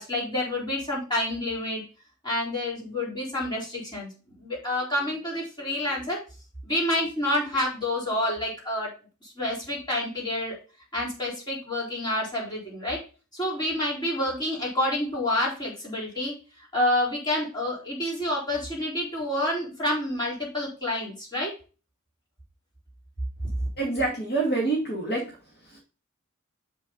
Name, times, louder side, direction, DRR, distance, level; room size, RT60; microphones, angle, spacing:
voice 1, 0.0-1.8 2.2-6.2 6.6-8.9 9.2-10.6 10.9-13.0 13.3-16.3 16.7-21.5 23.6-23.7, left 1 dB, 20° left, -4 dB, 4.0 m, -28 dB
voice 2, 23.8-25.3 25.6-25.8, right 3 dB, 50° left, -2 dB, 2.2 m, -27 dB
7.4 x 5.8 x 3.9 m, 0.34 s
head